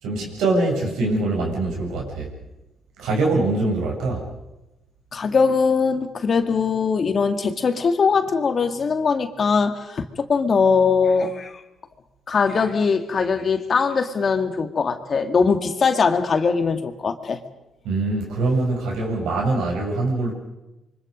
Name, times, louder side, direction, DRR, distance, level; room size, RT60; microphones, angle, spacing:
voice 1, 0.0-2.3 3.0-4.3 17.8-20.3, right 2 dB, 90° right, -1 dB, 7.7 m, -23 dB
voice 2, 5.1-11.6 12.3-17.4, left 5 dB, 45° left, 6 dB, 2.1 m, -21 dB
28.5 x 24.0 x 5.3 m, 0.99 s
cardioid pair, 90°, 0 cm